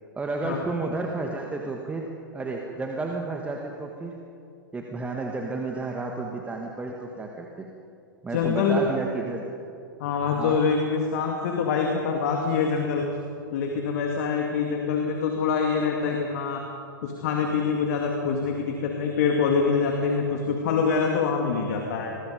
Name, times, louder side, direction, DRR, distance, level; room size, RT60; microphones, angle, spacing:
voice 1, 0.2-2.1 2.3-4.2 4.7-7.7 8.2-9.4 10.4-10.6, right 3 dB, 10° right, 1 dB, 1.8 m, -31 dB
voice 2, 8.3-8.9 10.0-13.0 13.5-16.6 17.0-22.2, left 5 dB, 50° left, 2 dB, 2.4 m, -25 dB
27.0 x 21.0 x 5.3 m, 2.5 s
figure-of-eight pair, 105°, 11 cm